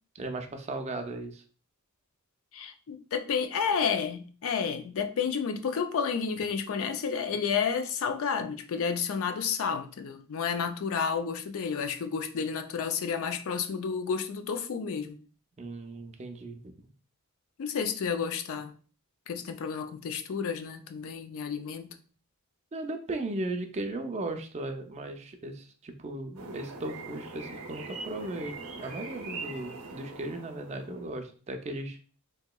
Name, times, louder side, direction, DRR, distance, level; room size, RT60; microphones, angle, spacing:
voice 1, 0.1-1.4 15.6-16.9 22.7-32.0, right 2 dB, 30° right, 0.4 m, -37 dB
voice 2, 2.5-15.2 17.6-18.7 19.3-22.0, left 6 dB, 65° left, 0.4 m, -31 dB
sound 1, 26.4-31.2, right 3 dB, 75° right, 0.6 m, -42 dB
3.5 x 2.8 x 2.3 m
head